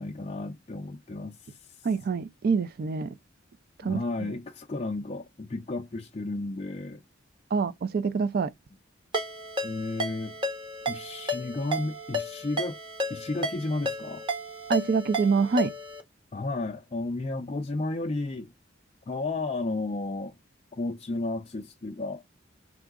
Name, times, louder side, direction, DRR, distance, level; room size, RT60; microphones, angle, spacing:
voice 1, 0.0-1.6 3.8-7.0 9.6-10.4 10.9-12.8 13.1-14.2 16.3-18.5 19.1-20.3 20.7-22.2, left 2 dB, 30° left, 0.4 m, -33 dB
voice 2, 1.8-3.1 3.8-4.3 7.5-8.5 14.7-15.7, right 5 dB, 50° right, 0.4 m, -26 dB
Ringtone, 9.1-16.0, left 1 dB, 25° right, 1.0 m, -33 dB
3.8 x 3.5 x 3.6 m
head